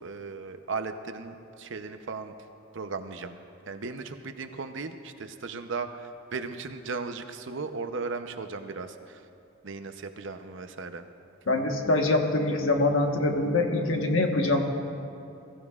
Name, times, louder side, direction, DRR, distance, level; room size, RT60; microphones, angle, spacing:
voice 1, 0.0-2.3 2.7-3.4 3.7-9.2 9.6-11.0, right 4 dB, 65° right, 8 dB, 0.7 m, -36 dB
voice 2, 11.5-14.6, left 2 dB, 75° left, 3 dB, 1.3 m, -24 dB
22.0 x 14.5 x 2.4 m, 2.7 s
head